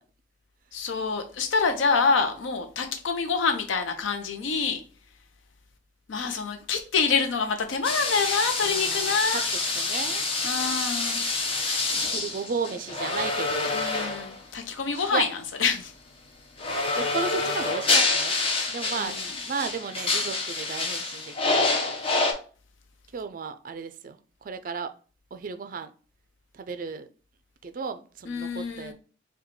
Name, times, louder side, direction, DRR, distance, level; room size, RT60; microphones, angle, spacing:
voice 1, 0.7-4.8 6.1-9.5 10.4-11.2 13.7-15.3 15.6-15.9 19.0-19.3 28.3-28.9, left 5 dB, 80° left, 0.6 m, -26 dB
sound 1, 7.8-14.4 14.9-15.2 16.6-22.3, left 3 dB, 30° left, 0.5 m, -27 dB
voice 2, 8.6-10.2 12.1-13.7 15.1-15.2 17.0-18.4 18.7-21.8 23.1-24.2 24.4-24.9 25.3-25.9 26.5-27.1 27.6-28.9, right 5 dB, 45° right, 0.3 m, -34 dB
4.9 x 2.2 x 3.0 m
head